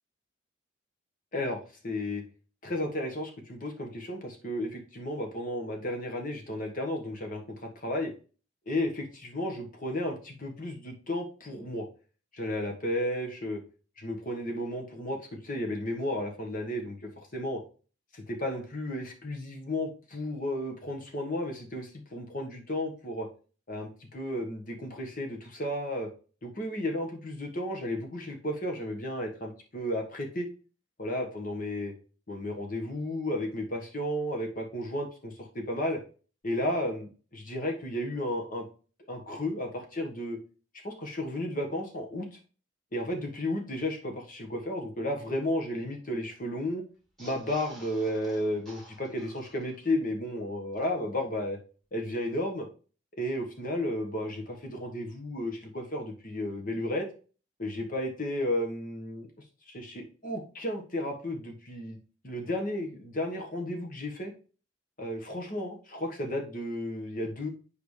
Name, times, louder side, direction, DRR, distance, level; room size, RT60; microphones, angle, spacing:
voice 1, 1.8-2.2 2.6-7.4 7.7-8.1 8.7-11.8 12.3-13.6 14.0-17.6 18.1-23.3 23.7-26.1 26.4-30.4 31.0-31.9 32.3-36.0 36.4-38.6 39.1-40.4 40.8-42.2 42.9-46.8 47.2-51.6 51.9-52.7 53.2-57.0 57.6-59.3 59.7-62.0 62.2-64.3 65.0-67.5, left 1 dB, 45° left, 2 dB, 1.4 m, -33 dB
sound 1, 47.0-50.0 50.4-50.5 50.7-50.8, right 1 dB, ahead, 1.8 m, -51 dB
7.8 x 5.0 x 3.2 m, 0.37 s
head